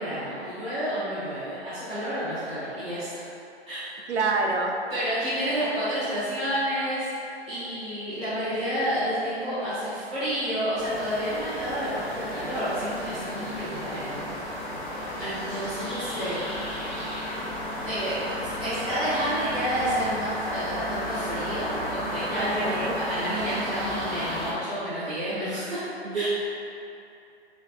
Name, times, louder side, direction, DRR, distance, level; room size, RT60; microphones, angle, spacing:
voice 1, 0.0-3.2 3.7-4.1 4.9-7.1 7.5-14.2 14.8-16.5 17.3-17.5 17.9-25.8 26.1-26.3, equal, 15° right, -15 dB, 1.3 m, -30 dB
voice 2, 4.1-4.8 22.4-23.0 26.0-26.3, right 3 dB, 80° right, 2 dB, 0.6 m, -27 dB
sound 1, 10.8-24.5, equal, ahead, 1.0 m, -33 dB
4.1 x 3.3 x 2.3 m, 2.7 s
figure-of-eight pair, 120°, 33 cm